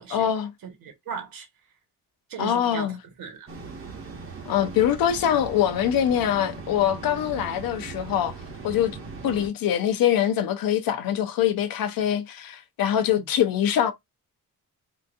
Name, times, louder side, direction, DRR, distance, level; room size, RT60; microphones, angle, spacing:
voice 1, 0.1-0.5 2.4-3.0 4.4-8.3 8.6-8.9 9.2-13.9, left 10 dB, 85° left, 0.7 m, -23 dB
voice 2, 0.6-1.5 2.3-3.5 13.2-13.3, right 6 dB, 85° right, 1.6 m, -37 dB
sound 1, 3.5-9.5, right 4 dB, 40° right, 0.9 m, -39 dB
3.8 x 2.6 x 2.6 m
wide cardioid pair, 175°, 34 cm